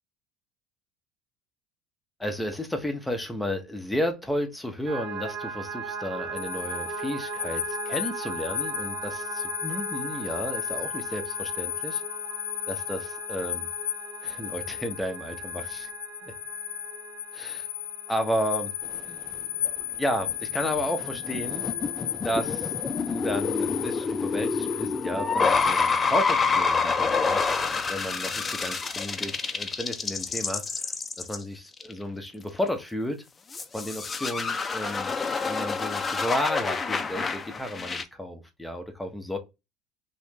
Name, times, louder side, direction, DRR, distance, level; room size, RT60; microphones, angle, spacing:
voice 1, 2.2-12.0 12.7-13.7 14.2-15.9 16.2-16.3 17.3-17.7 18.1-18.7 19.0-19.2 20.0-21.6 22.2-33.2 33.7-35.1 35.4-39.4, equal, 5° left, 0.8 m, -33 dB
sound 1, 4.9-23.6 24.0-24.8, right 4 dB, 60° right, 0.8 m, -39 dB
sound 2, 6.4-26.2, left 12 dB, 85° left, 0.4 m, -35 dB
sound 3, 18.8-19.3 19.6-19.8 20.2-20.3 20.6-31.4 31.8-31.9 33.5-38.0, left 5 dB, 25° left, 0.5 m, -28 dB
2.9 x 2.5 x 3.6 m
hypercardioid pair, 75°, 0 cm